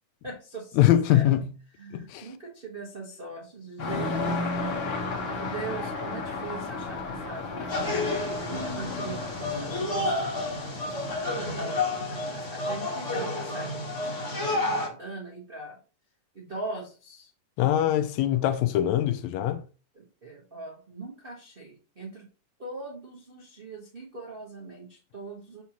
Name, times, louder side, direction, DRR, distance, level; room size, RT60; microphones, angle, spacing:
voice 1, 0.2-1.3 1.8-10.2 10.9-15.8 16.3-17.3 19.9-22.3 22.6-25.6, right 3 dB, 85° right, 0.5 m, -41 dB
voice 2, 0.8-1.5 1.9-2.3 17.6-19.6, left 12 dB, 80° left, 1.7 m, -23 dB
sound 1, 3.8-12.1, left 3 dB, 55° left, 1.5 m, -34 dB
sound 2, 7.7-14.9, left 2 dB, 35° left, 1.2 m, -30 dB
5.9 x 5.6 x 2.9 m
omnidirectional pair, 3.4 m